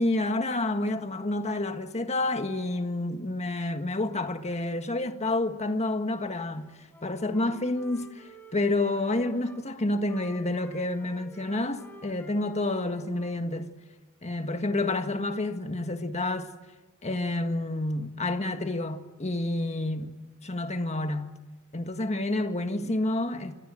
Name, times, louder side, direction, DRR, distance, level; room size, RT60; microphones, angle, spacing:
voice 1, 0.0-6.7 7.0-13.7 14.2-16.5 17.0-20.1 20.4-21.3 21.7-23.5, left 2 dB, 30° left, 1.7 m, -29 dB
Wind instrument woodwind instrument, 6.6-9.6 10.0-13.4, equal, 10° left, 4.4 m, -50 dB
27.5 x 26.0 x 7.7 m
head